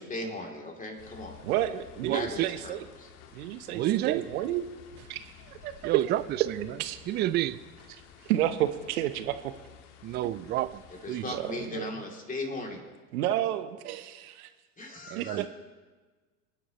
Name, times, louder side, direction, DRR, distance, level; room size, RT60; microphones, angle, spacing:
voice 1, 0.1-1.4 2.1-3.1 11.0-12.8 14.8-15.5, left 2 dB, 15° left, 1 dB, 3.0 m, -37 dB
sound 1, 1.0-11.7, left 8 dB, 65° left, 2.1 m, -53 dB
voice 2, 1.4-2.8 3.3-4.6 5.0-6.1 6.4-6.5 6.8-7.0 7.9-9.5 11.2-11.9 13.1-14.5 15.2-15.5, right 13 dB, 65° right, 11 dB, 1.1 m, -31 dB
voice 3, 2.0-2.5 3.7-4.3 5.8-6.2 6.6-6.7 7.1-7.6 10.0-10.8 11.1-11.2 15.1-15.5, right 14 dB, 25° right, 16 dB, 0.4 m, -29 dB
26.5 x 10.0 x 3.1 m, 1.3 s
hypercardioid pair, 90°, 47 cm